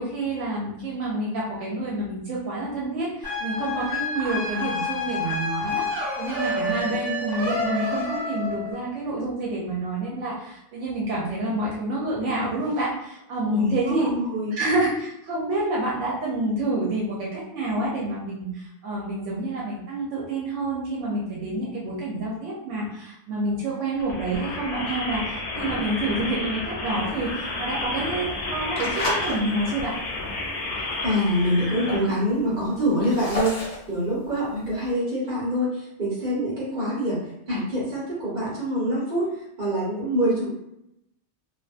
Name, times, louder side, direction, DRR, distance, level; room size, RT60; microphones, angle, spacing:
voice 1, 0.0-14.1 14.6-30.0, right 2 dB, 80° right, -4 dB, 0.9 m, -28 dB
sound 1, 3.2-8.7, left 2 dB, ahead, 1.2 m, -28 dB
voice 2, 13.5-14.6 30.8-40.5, equal, 40° right, -7 dB, 1.3 m, -25 dB
sound 2, 24.0-32.0, left 2 dB, 75° left, 0.9 m, -31 dB
sound 3, 27.0-29.4 29.8-30.2 30.6-30.7 30.9-31.0 31.2-31.8 32.3-34.9, left 2 dB, 45° left, 0.8 m, -31 dB
2.5 x 2.2 x 2.4 m, 0.81 s
omnidirectional pair, 1.2 m